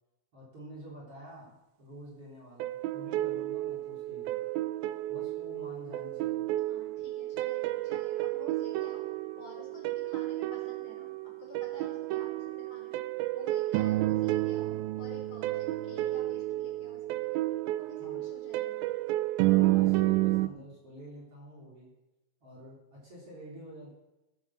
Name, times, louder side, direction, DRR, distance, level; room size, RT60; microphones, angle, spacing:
voice 1, 0.3-4.4 5.1-6.6 18.0-18.2 19.4-21.9 22.4-23.9, right 1 dB, 35° right, -4 dB, 4.1 m, -48 dB
sound 1, 2.6-20.5, right 16 dB, 80° right, 2.3 m, -31 dB
voice 2, 6.7-9.1 9.4-13.0 13.3-14.7 15.0-17.5 17.8-18.8, left 1 dB, 45° left, -3 dB, 5.7 m, -51 dB
16.0 x 7.9 x 7.5 m, 0.98 s
omnidirectional pair, 4.5 m